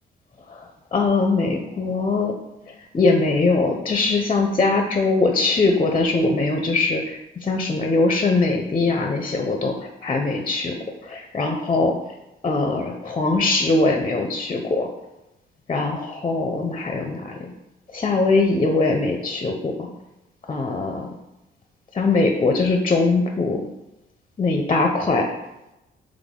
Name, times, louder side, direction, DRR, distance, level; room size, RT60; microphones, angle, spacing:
voice 1, 0.9-2.3 2.9-9.7 10.0-10.7 11.0-12.0 12.4-14.9 15.7-17.5 17.9-19.9 20.5-21.1 21.9-23.6 24.4-25.3, left 3 dB, 25° left, 3 dB, 0.5 m, -21 dB
4.0 x 3.2 x 3.6 m, 0.93 s
cardioid pair, 90°, 20 cm